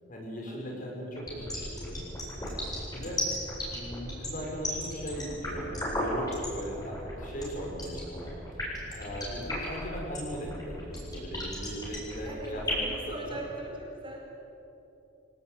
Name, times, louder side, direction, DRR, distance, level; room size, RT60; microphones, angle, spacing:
voice 1, 0.1-2.0 2.9-3.2 3.7-8.3 8.9-13.4, equal, 45° left, -1 dB, 6.3 m, -38 dB
sound 1, 1.1-12.9, left 1 dB, 20° left, 8.0 m, -34 dB
voice 2, 12.8-14.3, right 2 dB, 30° right, -1 dB, 5.0 m, -41 dB
24.5 x 19.0 x 9.3 m, 2.9 s
head